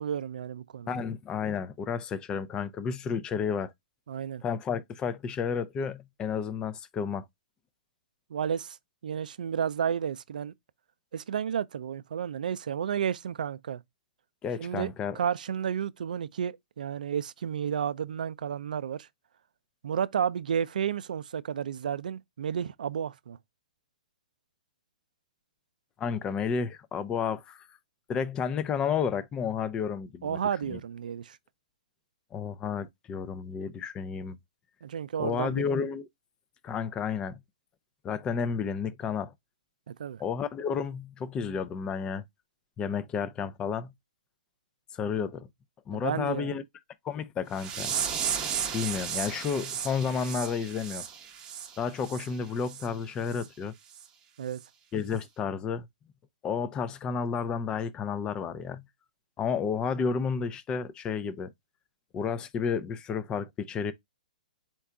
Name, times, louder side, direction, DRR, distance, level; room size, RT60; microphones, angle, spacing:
voice 1, 0.0-1.0 4.1-4.4 8.3-8.8 9.0-10.5 11.1-13.8 14.6-19.1 19.8-23.4 30.2-31.4 34.8-35.7 39.9-40.2 45.9-46.6 54.4-54.6, right 8 dB, 75° right, 0.4 m, -32 dB
voice 2, 0.9-3.7 4.4-7.2 14.4-15.2 26.0-27.6 28.1-30.4 30.7-30.8 32.3-34.4 35.2-36.1 36.6-37.4 38.0-39.3 40.2-42.2 42.8-43.9 44.9-45.5 45.9-46.6 47.0-48.0 48.7-51.0 51.8-53.7 54.9-55.9 56.4-58.8 59.4-61.5 62.1-63.9, left 6 dB, 20° left, 0.5 m, -31 dB
sound 1, 47.5-52.3 52.6-52.9 53.3-53.5 53.9-54.1 54.5-54.6, right 8 dB, 20° right, 0.9 m, -34 dB
4.5 x 2.3 x 3.6 m
hypercardioid pair, 140°, 4 cm